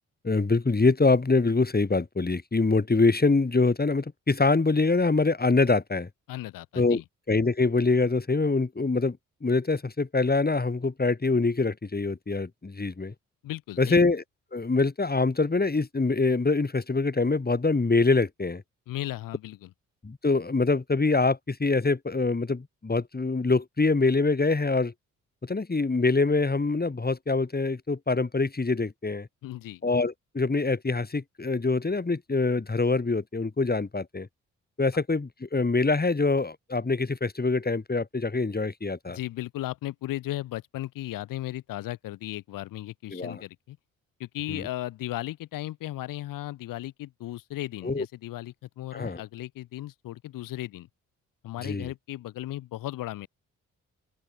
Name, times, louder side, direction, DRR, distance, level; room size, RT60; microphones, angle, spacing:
voice 1, 0.2-6.1 6.8-7.0 7.3-13.1 13.8-14.2 14.5-18.6 20.0-24.9 25.4-29.3 29.8-34.3 34.8-39.2 43.1-43.4 44.5-44.7 47.8-48.1 48.9-49.2 51.6-51.9, left 3 dB, 30° left, 7.8 m, -24 dB
voice 2, 6.3-7.0 13.4-14.0 18.9-19.7 29.4-29.8 39.1-43.8 44.2-50.9 51.4-53.3, left 15 dB, 90° left, 5.0 m, -36 dB
open air
supercardioid pair, 60°, 32 cm